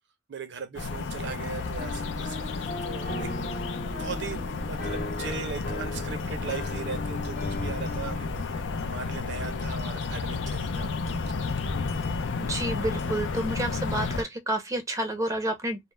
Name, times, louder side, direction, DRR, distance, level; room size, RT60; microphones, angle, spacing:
voice 1, 0.3-3.3 3.9-10.9, right 5 dB, 65° right, 0.6 m, -39 dB
sound 1, 0.7-14.2, left 4 dB, 80° left, 0.4 m, -32 dB
Piano, 1.4-8.2, left 2 dB, 55° left, 0.8 m, -37 dB
voice 2, 12.4-15.9, right 1 dB, 15° right, 0.5 m, -30 dB
2.3 x 2.0 x 3.0 m
head